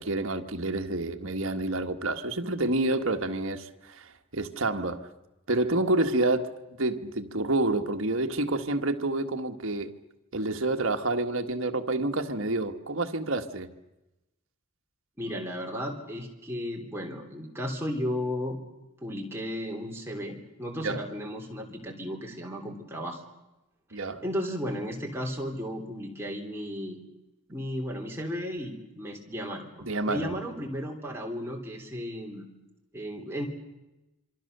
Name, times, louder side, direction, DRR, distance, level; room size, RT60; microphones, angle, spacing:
voice 1, 0.0-5.1 5.5-6.5 6.8-9.9 10.3-13.7 20.8-21.0 23.9-24.2 29.8-30.4, right 2 dB, 65° right, 1.5 m, -28 dB
voice 2, 15.2-18.6 19.0-23.2 24.2-27.0 27.5-32.4 32.9-33.5, equal, 10° right, 3.3 m, -34 dB
27.0 x 24.5 x 6.8 m
head